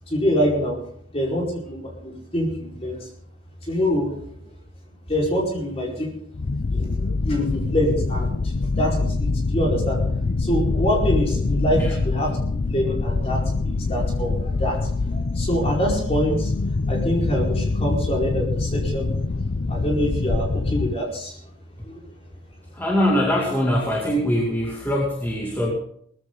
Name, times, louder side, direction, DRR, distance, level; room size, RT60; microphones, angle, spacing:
voice 1, 0.1-0.8 1.1-3.1 3.6-4.2 5.1-6.1 6.7-8.3 8.8-10.0 10.4-14.8 15.1-16.5 16.9-19.2 19.7-21.4 21.8-22.0, equal, 30° left, -3 dB, 5.0 m, -25 dB
sound 1, 6.3-21.0, left 3 dB, 55° left, 0.6 m, -24 dB
voice 2, 22.7-25.7, equal, 10° left, -4 dB, 2.5 m, -22 dB
18.5 x 15.0 x 4.0 m, 0.65 s
head